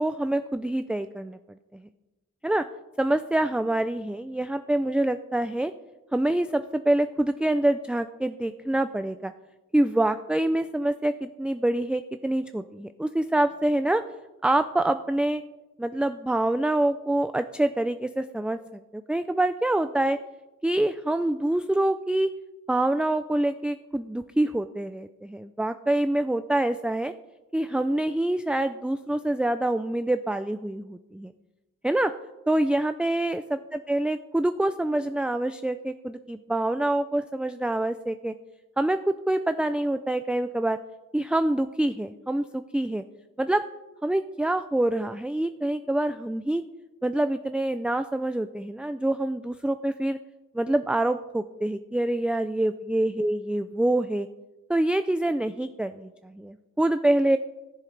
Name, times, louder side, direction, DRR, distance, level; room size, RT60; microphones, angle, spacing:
voice 1, 0.0-1.4 1.7-1.9 2.4-2.6 3.0-5.7 6.1-9.3 9.7-14.0 14.4-15.4 15.8-20.2 20.6-22.3 22.7-27.1 27.5-31.3 31.8-32.1 32.5-33.4 33.9-38.3 38.8-40.8 41.1-43.0 43.4-43.6 44.0-46.6 47.0-50.2 50.5-54.3 54.7-57.4, right 1 dB, 5° right, 10 dB, 0.3 m, -26 dB
18.0 x 7.5 x 3.3 m, 1.1 s
wide cardioid pair, 55°, 32 cm